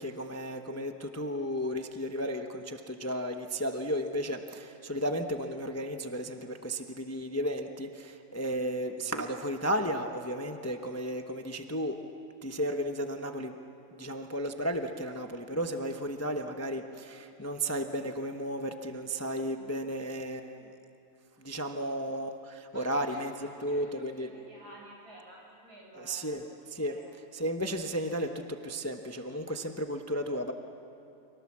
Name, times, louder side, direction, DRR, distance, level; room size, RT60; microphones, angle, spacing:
voice 1, 0.0-12.0 12.4-13.5 13.9-20.7 21.4-23.3 23.6-24.3 26.0-26.4 26.7-26.9 27.3-30.5, equal, 15° left, 5 dB, 0.7 m, -34 dB
voice 2, 22.7-26.3 26.7-27.1, right 1 dB, 70° right, -3 dB, 8.1 m, -52 dB
30.0 x 24.5 x 7.4 m, 2.8 s
omnidirectional pair, 1.7 m